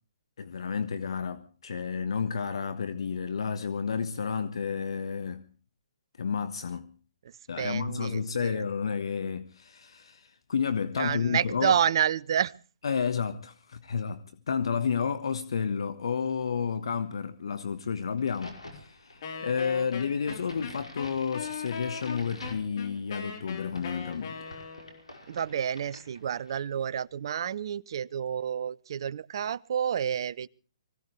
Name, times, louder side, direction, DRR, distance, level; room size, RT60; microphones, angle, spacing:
voice 1, 0.4-5.5 6.2-6.9 7.5-11.8 12.8-24.4, left 6 dB, 65° left, 1.3 m, -31 dB
voice 2, 7.6-8.6 11.0-12.5 25.3-30.5, right 8 dB, 55° right, 0.7 m, -29 dB
Crack, 18.2-26.7, left 1 dB, 90° left, 5.6 m, -49 dB
Wind instrument woodwind instrument, 19.2-25.0, left 6 dB, 50° left, 3.6 m, -40 dB
24.5 x 16.5 x 3.3 m
figure-of-eight pair, 130°, 3 cm